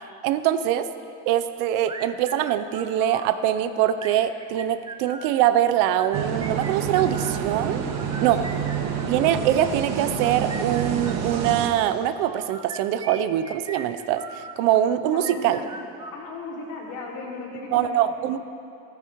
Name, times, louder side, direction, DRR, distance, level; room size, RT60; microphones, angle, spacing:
voice 1, 0.2-0.9 1.3-7.8 8.2-8.4 9.1-15.6 17.7-18.5, right 11 dB, 85° right, 12 dB, 0.8 m, -23 dB
sound 1, 1.9-3.4 4.0-5.4 5.9-7.4 7.9-9.5 10.1-11.5 12.2-14.6 15.1-16.6, right 3 dB, 15° right, 0.7 m, -40 dB
sound 2, 6.1-11.7, right 7 dB, 55° right, 1.5 m, -28 dB
voice 2, 15.1-15.8 16.1-18.0, left 3 dB, 75° left, -3 dB, 3.6 m, -36 dB
14.5 x 14.0 x 4.7 m, 2.6 s
cardioid pair, 135°, 31 cm